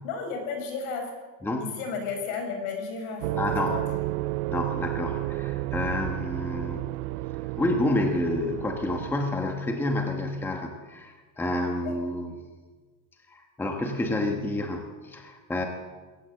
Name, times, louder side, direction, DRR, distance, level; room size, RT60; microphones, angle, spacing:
voice 1, 0.0-1.1 1.6-3.8 11.8-12.0, left 5 dB, 65° left, 4 dB, 6.8 m, -33 dB
sound 1, 3.2-9.5, right 18 dB, 75° right, 0.6 m, -32 dB
voice 2, 3.4-3.7 4.5-6.8 7.6-12.3 13.3-15.7, left 1 dB, 5° left, 3 dB, 1.2 m, -29 dB
21.5 x 17.0 x 7.8 m, 1.4 s
cardioid pair, 180°, 45 cm